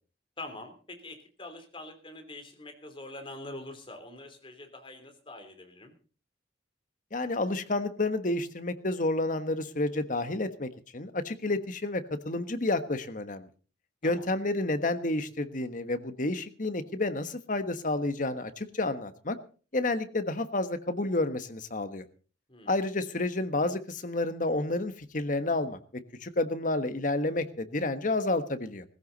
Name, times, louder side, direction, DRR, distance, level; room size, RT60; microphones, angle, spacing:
voice 1, 0.4-5.9 14.0-14.3 22.5-22.8, left 2 dB, 30° left, 5 dB, 3.3 m, -44 dB
voice 2, 7.1-13.5 14.0-19.4 19.7-22.0 22.7-25.8 26.2-28.8, left 2 dB, 45° left, 10 dB, 1.3 m, -30 dB
18.0 x 15.0 x 4.0 m, 0.39 s
head